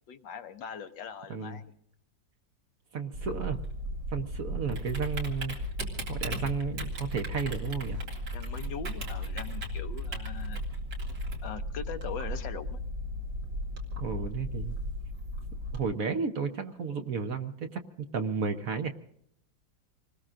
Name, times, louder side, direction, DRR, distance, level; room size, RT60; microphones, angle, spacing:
voice 1, 0.1-1.7 4.6-4.7 8.3-10.6 11.4-12.8, left 7 dB, 75° left, 8 dB, 1.5 m, -41 dB
voice 2, 1.3-1.6 2.9-3.6 4.1-5.5 6.1-8.0 14.0-14.8 15.7-17.8 18.1-18.9, right 5 dB, 55° right, 6 dB, 1.1 m, -33 dB
Typing, 3.1-15.8, equal, 75° right, 3.0 m, -35 dB
27.0 x 20.0 x 2.5 m, 0.66 s
omnidirectional pair, 2.0 m